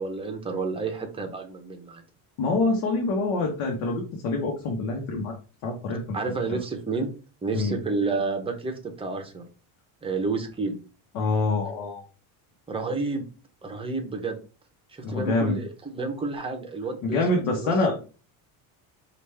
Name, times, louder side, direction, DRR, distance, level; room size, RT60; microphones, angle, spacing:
voice 1, 0.0-2.0 6.1-7.1 7.4-9.4 10.0-10.8 12.7-13.2 13.6-14.4 14.9-18.0, right 3 dB, 10° right, 4 dB, 0.6 m, -30 dB
voice 2, 2.4-5.3 5.6-6.2 6.5-6.6 7.5-7.8 11.1-12.0 15.0-15.6 17.0-18.0, left 3 dB, 75° left, 1 dB, 1.2 m, -26 dB
5.1 x 2.5 x 3.2 m, 0.34 s
cardioid pair, 150°, 48 cm